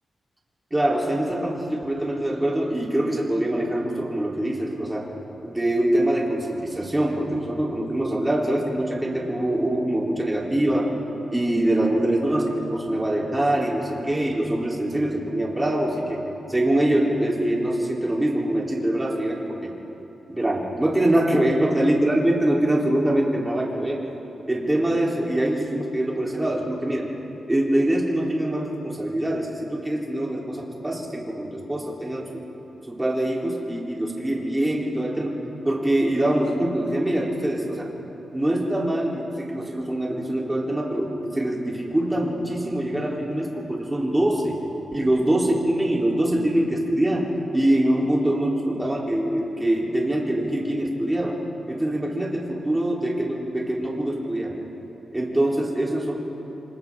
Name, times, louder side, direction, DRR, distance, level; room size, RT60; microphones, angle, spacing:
voice 1, 0.7-5.1 5.4-10.9 11.3-16.2 16.5-19.7 20.3-24.0 24.5-27.1 27.5-32.4 32.9-35.4 35.6-37.9 38.3-44.6 44.9-51.4 51.7-54.6 55.1-56.2, right 1 dB, 10° right, -3 dB, 3.5 m, -24 dB
26.5 x 26.5 x 3.7 m, 3.0 s
wide cardioid pair, 125°, 0 cm